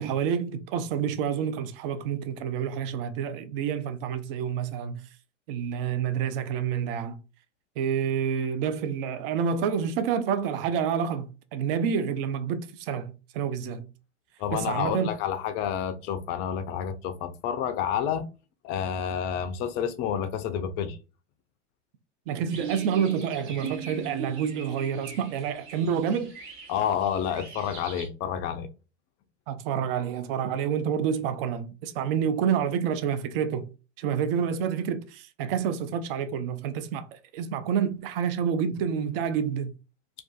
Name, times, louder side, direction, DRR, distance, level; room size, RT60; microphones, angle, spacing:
voice 1, 0.0-5.0 5.5-7.2 7.8-13.9 14.5-15.1 22.3-26.3 29.5-33.7 34.0-39.7, right 7 dB, 50° right, 0.5 m, -28 dB
voice 2, 14.4-18.2 18.6-21.0 26.7-28.7, left 8 dB, 30° left, 0.4 m, -29 dB
sound 1, 22.5-28.1, right 8 dB, 35° right, 0.9 m, -40 dB
2.4 x 2.3 x 2.3 m
hypercardioid pair, 95°, 37 cm